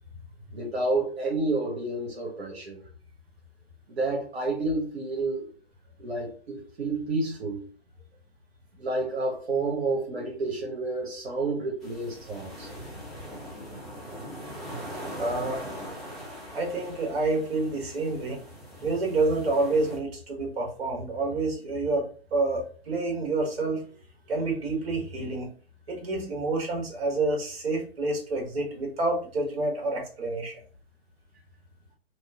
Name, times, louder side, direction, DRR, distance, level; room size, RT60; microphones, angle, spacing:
voice 1, 0.5-2.8 3.9-5.5 6.0-7.7 8.8-12.7, right 2 dB, 90° right, -2 dB, 1.2 m, -30 dB
sound 1, 11.8-20.0, equal, ahead, 1.0 m, -41 dB
voice 2, 15.2-15.6 16.5-18.4 18.8-23.8 24.3-25.5 25.9-30.6, right 2 dB, 70° right, 1 dB, 1.5 m, -28 dB
3.0 x 2.6 x 3.6 m, 0.41 s
hypercardioid pair, 135°, 31 cm